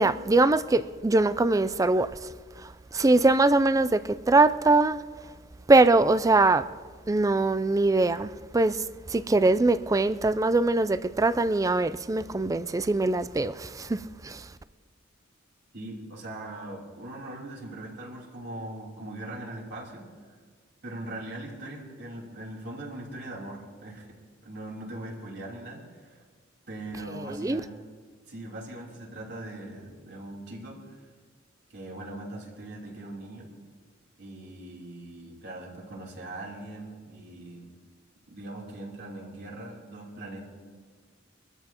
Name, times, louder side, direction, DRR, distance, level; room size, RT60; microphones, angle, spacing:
voice 1, 0.0-2.1 2.6-5.0 5.7-6.7 7.1-8.8 9.1-14.4 27.4-27.6, right 2 dB, 15° right, 0.4 m, -22 dB
voice 2, 15.7-20.3 20.8-24.2 24.4-26.2 26.7-27.7 28.3-31.0 31.7-33.5 34.2-37.7 38.3-40.4, right 1 dB, 60° right, 3.4 m, -40 dB
24.5 x 13.5 x 2.9 m
head